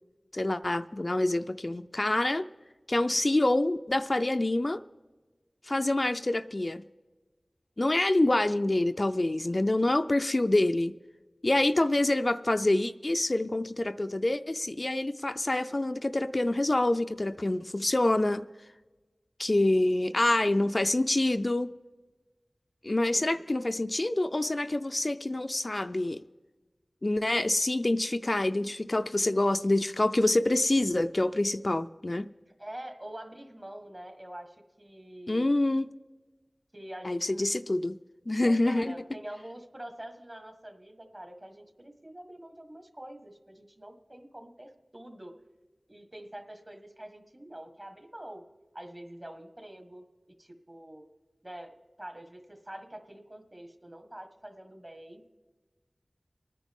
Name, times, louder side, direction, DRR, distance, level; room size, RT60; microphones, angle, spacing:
voice 1, 0.3-2.5 2.9-4.8 5.6-6.8 7.8-10.9 11.4-18.5 19.4-21.7 22.8-26.2 27.0-32.3 35.3-35.9 37.0-38.0 38.3-38.9, left 2 dB, 45° left, 9 dB, 0.4 m, -26 dB
voice 2, 11.5-11.8 23.1-23.4 32.6-35.7 36.7-37.5 38.4-45.3 45.9-48.4 48.7-50.0 50.4-51.1 51.4-55.2, right 1 dB, 35° right, 6 dB, 1.5 m, -45 dB
25.0 x 9.9 x 3.6 m, 1.2 s
wide cardioid pair, 45°, 0 cm